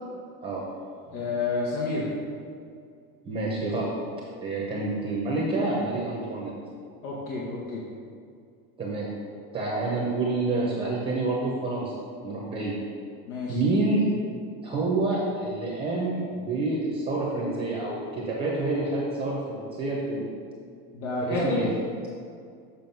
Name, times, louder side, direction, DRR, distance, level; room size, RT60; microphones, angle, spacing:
voice 1, 1.1-2.1 7.0-7.8 13.3-13.6 20.9-21.7, left 3 dB, 85° left, -6 dB, 1.7 m, -29 dB
voice 2, 3.2-3.9 4.4-6.5 8.8-9.1 9.5-11.9 12.2-12.7 13.5-14.1 14.6-20.3 21.2-21.7, right 2 dB, 15° right, -4 dB, 0.7 m, -28 dB
7.5 x 5.0 x 5.4 m, 2.3 s
supercardioid pair, 170°, 44 cm